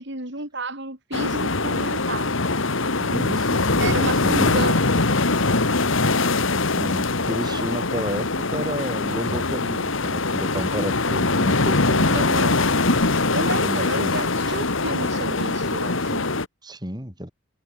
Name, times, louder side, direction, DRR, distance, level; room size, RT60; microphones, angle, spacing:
voice 1, 0.0-2.3 3.8-4.8 12.1-12.5 13.3-16.2, right 2 dB, 55° right, 4.5 m, -31 dB
sound 1, 1.1-16.5, left 3 dB, 65° left, 1.8 m, -22 dB
voice 2, 3.0-4.6 6.8-12.2 13.5-14.2 16.6-17.3, equal, 20° right, 5.6 m, -31 dB
head